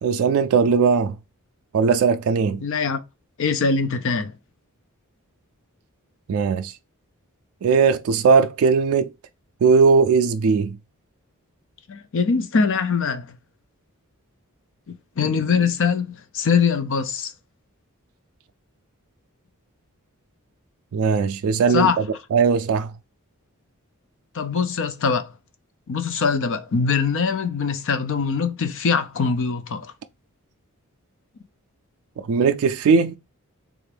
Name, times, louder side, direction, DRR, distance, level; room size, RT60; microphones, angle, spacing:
voice 1, 0.0-1.1 1.7-2.6 6.3-6.7 7.6-9.1 9.6-10.8 20.9-21.9 22.3-22.9 32.2-33.2, right 5 dB, 70° right, 0.3 m, -18 dB
voice 2, 2.6-3.0 3.4-4.3 11.9-13.3 15.2-17.3 21.7-22.0 24.3-25.3 25.9-29.9, left 5 dB, 60° left, 0.5 m, -22 dB
3.4 x 2.5 x 3.3 m
head